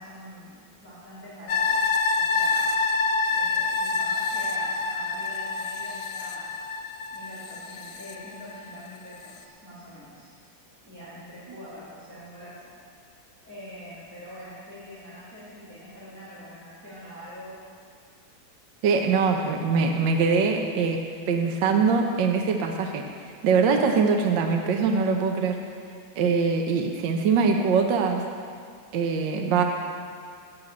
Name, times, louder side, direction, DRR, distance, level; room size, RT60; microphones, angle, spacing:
voice 1, 0.0-1.8 2.1-2.8 3.3-6.5 7.1-10.3 10.8-12.7 13.4-17.6, equal, 5° left, -11 dB, 2.9 m, -44 dB
sound 1, 1.5-8.8 9.2-9.3, left 4 dB, 75° left, 1.5 m, -27 dB
voice 2, 18.8-21.0 21.3-23.0 23.4-25.6 26.2-28.2 28.9-29.6, right 5 dB, 70° right, 3 dB, 1.4 m, -23 dB
9.2 x 7.9 x 8.4 m, 2.2 s
omnidirectional pair, 2.3 m